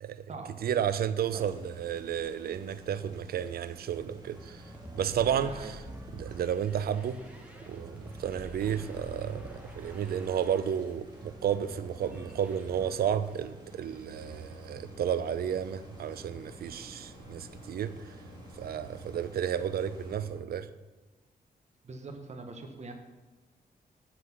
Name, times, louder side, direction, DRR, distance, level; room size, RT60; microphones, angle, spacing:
voice 1, 0.6-4.6 4.9-5.5 6.1-7.2 7.7-17.9 18.6-20.7, right 9 dB, 75° right, 0.5 m, -32 dB
sound 1, 1.3-20.1, right 1 dB, 25° right, 2.0 m, -53 dB
sound 2, 4.3-13.5 13.8-14.6, right 1 dB, 10° right, 1.2 m, -47 dB
voice 2, 5.4-5.8 21.8-22.9, right 3 dB, 45° right, 1.1 m, -43 dB
Mechanisms, 14.1-20.4, equal, 30° left, 2.1 m, -50 dB
7.8 x 5.8 x 6.0 m
cardioid pair, 105°, 16 cm